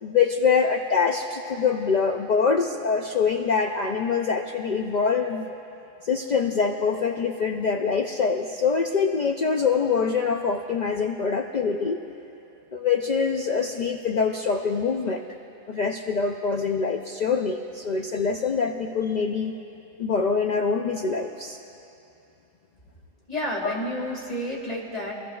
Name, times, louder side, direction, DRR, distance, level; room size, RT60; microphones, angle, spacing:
voice 1, 0.0-5.6 6.0-12.0 12.7-15.2 15.7-19.5 20.0-21.6 23.6-23.7, left 5 dB, 80° left, 2 dB, 0.4 m, -24 dB
voice 2, 23.3-25.1, left 1 dB, 30° left, -3 dB, 2.1 m, -30 dB
23.5 x 14.0 x 2.3 m, 2.8 s
omnidirectional pair, 1.3 m